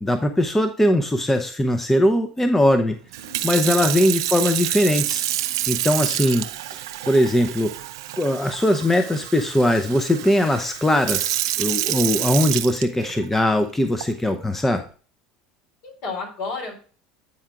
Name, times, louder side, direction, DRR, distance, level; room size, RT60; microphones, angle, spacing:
voice 1, 0.0-3.0 3.4-5.2 5.7-6.5 7.1-7.7 8.2-14.8, left 1 dB, 10° left, 7 dB, 0.7 m, -20 dB
Sink (filling or washing) / Fill (with liquid), 3.1-13.4 14.0-14.3, right 13 dB, 75° right, 0.5 m, -28 dB
voice 2, 3.2-3.7 15.8-16.7, left 4 dB, 65° left, 0 dB, 3.4 m, -32 dB
8.7 x 4.6 x 3.7 m, 0.39 s
hypercardioid pair, 80°, 2 cm